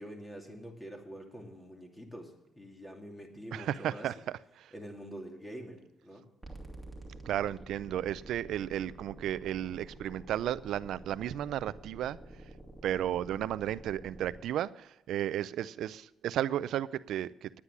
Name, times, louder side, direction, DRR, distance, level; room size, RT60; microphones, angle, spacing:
voice 1, 0.0-4.1 4.7-6.3, equal, 15° left, 2 dB, 2.8 m, -46 dB
voice 2, 3.5-4.7 7.1-12.2 12.8-17.5, right 11 dB, 80° right, 17 dB, 0.4 m, -34 dB
sound 1, 6.4-14.4, right 1 dB, 5° right, 2.7 m, -49 dB
9.9 x 9.7 x 7.2 m, 0.86 s
cardioid pair, 90°, 0 cm